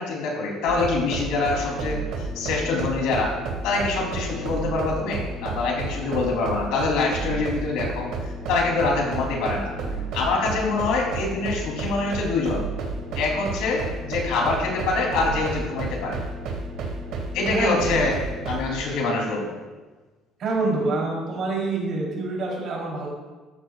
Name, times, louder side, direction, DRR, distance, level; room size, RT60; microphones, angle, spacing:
voice 1, 0.0-2.0 2.4-3.3 3.6-9.7 10.1-12.6 13.2-16.2 17.3-18.1 18.5-19.5, left 3 dB, 80° left, -1 dB, 3.4 m, -25 dB
sound 1, 0.7-18.7, right 3 dB, 60° right, 2.1 m, -31 dB
voice 2, 17.5-18.0 20.4-23.1, right 3 dB, 40° right, -3 dB, 3.7 m, -26 dB
13.5 x 12.0 x 2.5 m, 1.3 s
cardioid pair, 170°, 0 cm